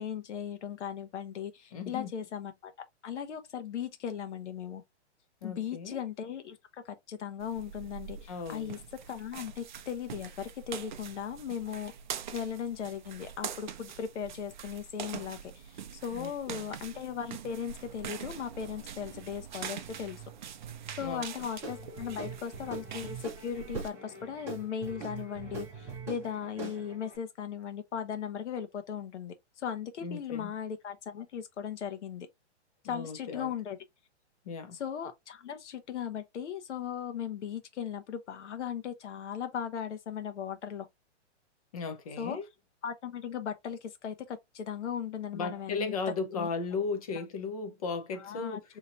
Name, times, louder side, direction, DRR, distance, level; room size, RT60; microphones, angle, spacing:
voice 1, 0.0-2.7 3.0-4.8 5.4-8.8 9.1-11.9 12.3-20.2 21.0-32.3 32.8-33.8 34.7-40.9 42.2-42.4 42.8-45.9 46.3-46.5 47.1-47.2 48.2-48.6, left 8 dB, 75° left, 1.0 m, -38 dB
voice 2, 1.7-2.1 5.4-6.0 8.3-8.8 16.1-16.7 21.0-21.5 30.0-30.5 32.8-33.5 34.4-34.8 41.7-42.4 45.3-48.6, left 4 dB, 30° left, 0.6 m, -36 dB
sound 1, 7.4-23.9, right 8 dB, 45° right, 0.5 m, -44 dB
Guitar / Drum, 21.6-27.2, right 3 dB, 5° right, 0.8 m, -43 dB
4.3 x 2.9 x 2.5 m
hypercardioid pair, 170°, 35 cm